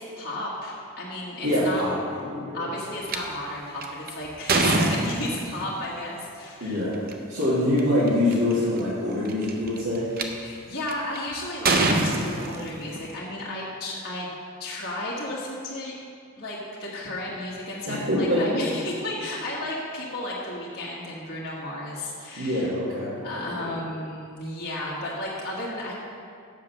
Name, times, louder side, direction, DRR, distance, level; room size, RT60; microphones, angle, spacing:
voice 1, 0.0-1.8 2.5-6.8 10.4-14.3 14.6-16.0 16.4-22.7 23.2-26.0, left 1 dB, 45° left, -6 dB, 1.6 m, -33 dB
voice 2, 1.4-2.6 6.6-7.0 7.3-10.1 17.9-18.6 22.4-23.2 23.6-23.7, left 1 dB, 70° right, -11 dB, 2.2 m, -25 dB
sound 1, 3.1-3.2 3.8-5.7 6.9-7.1 7.8-7.9 8.1-8.5 9.3-10.2 10.9-11.2 11.7-13.1, right 2 dB, 40° right, 0.7 m, -24 dB
7.5 x 7.5 x 6.0 m, 2.2 s
head